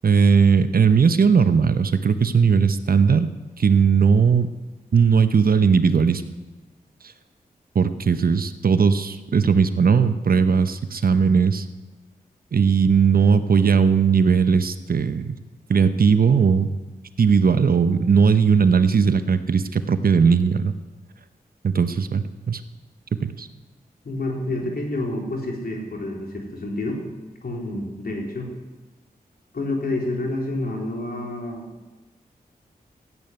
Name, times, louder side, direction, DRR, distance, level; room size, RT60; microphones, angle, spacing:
voice 1, 0.0-3.3 3.6-4.5 4.9-6.2 7.7-11.7 12.5-15.4 15.7-16.7 17.2-20.7 21.6-22.6 23.2-23.5, right 6 dB, 65° right, 11 dB, 0.9 m, -18 dB
voice 2, 24.0-27.0 27.4-28.5 29.5-31.7, left 2 dB, 70° left, 0 dB, 3.7 m, -28 dB
14.0 x 8.8 x 9.4 m, 1.2 s
cardioid pair, 50°, 16 cm